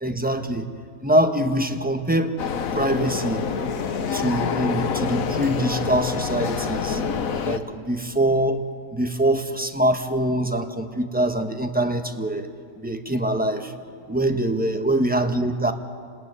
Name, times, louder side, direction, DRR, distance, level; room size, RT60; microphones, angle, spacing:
voice 1, 0.0-0.7 1.0-2.4 2.7-3.4 4.1-7.0 7.4-8.6 8.9-12.5 12.8-13.7 14.1-15.7, right 1 dB, 5° right, 6 dB, 1.4 m, -23 dB
sound 1, 2.4-7.6, left 6 dB, 80° left, 1.6 m, -26 dB
28.5 x 20.0 x 9.7 m, 2.3 s
omnidirectional pair, 1.4 m